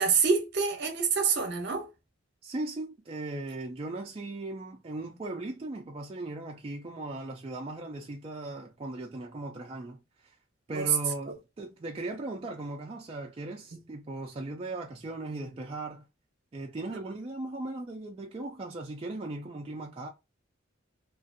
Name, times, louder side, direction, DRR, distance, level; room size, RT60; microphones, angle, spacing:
voice 1, 0.0-1.9 10.7-10.9 13.7-13.8, right 5 dB, 55° right, 0.7 m, -26 dB
voice 2, 2.4-10.4 10.7-16.1 16.5-20.1, right 2 dB, 30° right, 0.3 m, -38 dB
2.5 x 2.4 x 2.5 m
head